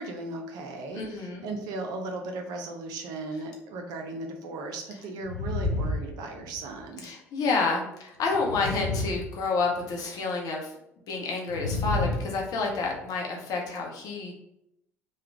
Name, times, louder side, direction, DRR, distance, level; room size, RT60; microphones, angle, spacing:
voice 1, 0.0-7.0, right 2 dB, 60° right, 3 dB, 0.6 m, -36 dB
voice 2, 0.9-1.4 7.0-10.7 11.1-14.3, left 4 dB, 55° left, 0 dB, 0.8 m, -29 dB
sound 1, 5.2-6.8 8.2-9.9 11.5-13.0, left 2 dB, 85° left, 0.4 m, -31 dB
3.2 x 2.3 x 3.3 m, 0.79 s
figure-of-eight pair, 55°, 8 cm